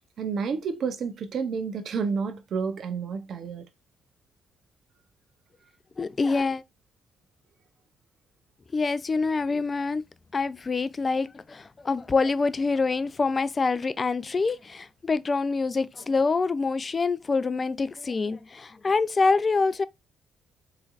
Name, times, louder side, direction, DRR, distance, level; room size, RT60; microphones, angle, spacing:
voice 1, 0.2-3.6, right 5 dB, 60° right, 0.7 m, -30 dB
voice 2, 6.0-6.6 8.7-10.0 10.3-19.8, left 4 dB, 30° left, 0.3 m, -26 dB
3.8 x 3.2 x 2.4 m
cardioid pair, 90°, 0 cm